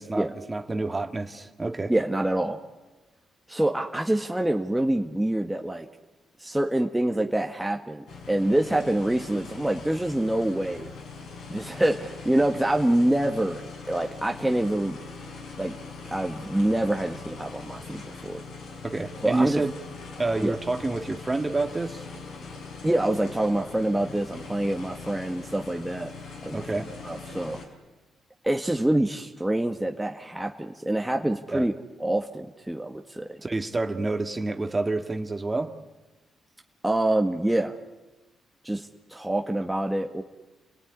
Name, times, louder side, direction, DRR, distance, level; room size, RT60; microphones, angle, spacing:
voice 1, 0.0-1.9 18.8-19.7 20.2-22.1 26.5-26.9 31.5-31.7 33.4-35.7, right 2 dB, 25° right, 6 dB, 2.3 m, -28 dB
voice 2, 1.9-2.6 3.5-5.9 6.4-10.9 11.5-15.0 15.6-15.7 16.1-18.4 19.2-19.6 20.4-20.6 22.8-26.1 26.4-26.6 27.0-27.6 28.4-31.7 32.0-33.4 36.8-37.7 38.6-40.2, right 1 dB, 10° right, 3 dB, 1.9 m, -26 dB
sound 1, 8.1-27.7, left 4 dB, 75° left, 5.9 m, -41 dB
29.5 x 18.5 x 10.0 m, 1.2 s
supercardioid pair, 50°, 0 cm